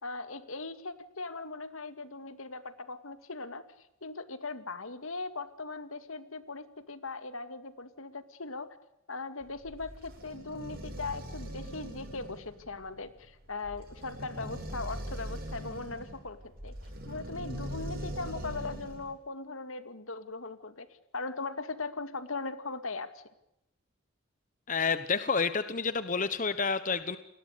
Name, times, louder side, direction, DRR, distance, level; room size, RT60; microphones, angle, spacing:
voice 1, 0.0-8.8 9.1-16.8 17.1-20.9 21.1-23.2, left 3 dB, 75° left, 11 dB, 2.3 m, -39 dB
sound 1, 9.4-19.1, right 1 dB, 45° right, 7.9 m, -41 dB
voice 2, 24.7-27.2, left 5 dB, 40° left, 12 dB, 1.1 m, -29 dB
29.5 x 20.5 x 6.7 m, 0.84 s
head